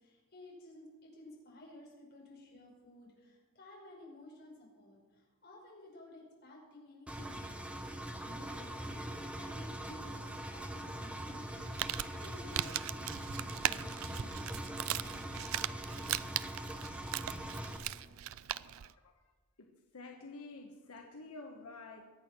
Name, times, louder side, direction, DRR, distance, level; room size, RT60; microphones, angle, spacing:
voice 1, 0.0-16.0, left 1 dB, 50° left, -3 dB, 5.4 m, -55 dB
Engine, 7.1-17.8, right 1 dB, 5° right, 1.2 m, -42 dB
Crumpling crinkling, 11.5-18.9, right 12 dB, 65° right, 0.4 m, -39 dB
voice 2, 18.4-19.2 19.6-22.0, left 3 dB, 90° left, 2 dB, 1.3 m, -50 dB
22.5 x 8.5 x 6.1 m, 1.4 s
head